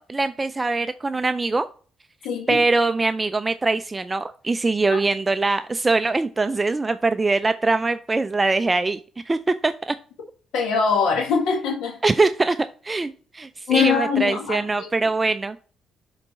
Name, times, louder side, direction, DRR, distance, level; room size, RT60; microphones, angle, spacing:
voice 1, 0.0-1.7 2.5-9.0 9.3-10.0 12.0-12.6 12.8-15.6, right 3 dB, 20° right, 0.3 m, -22 dB
voice 2, 2.2-2.6 4.9-5.0 10.5-12.0 13.7-14.9, left 6 dB, 85° left, 1.6 m, -22 dB
6.7 x 4.0 x 4.2 m
cardioid pair, 90°, 0 cm